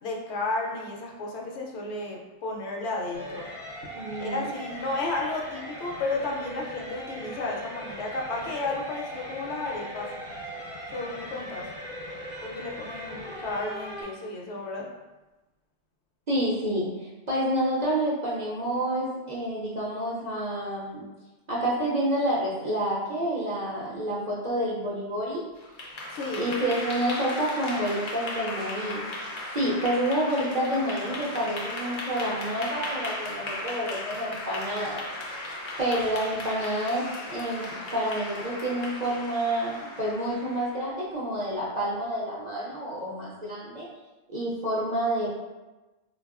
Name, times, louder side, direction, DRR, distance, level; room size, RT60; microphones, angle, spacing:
voice 1, 0.0-3.5 4.2-10.1 10.9-11.7 12.4-14.9 26.1-26.4, left 2 dB, 70° left, 0 dB, 0.8 m, -33 dB
sound 1, 3.1-14.0, equal, 30° right, 0.8 m, -39 dB
voice 2, 3.9-4.8 16.3-21.0 21.5-25.4 26.4-35.0 35.8-43.9 44.3-45.3, right 1 dB, 55° right, -6 dB, 0.5 m, -29 dB
Clapping / Applause, 25.6-40.8, left 2 dB, 55° left, 0.5 m, -36 dB
3.5 x 2.2 x 2.3 m, 1.1 s
omnidirectional pair, 1.2 m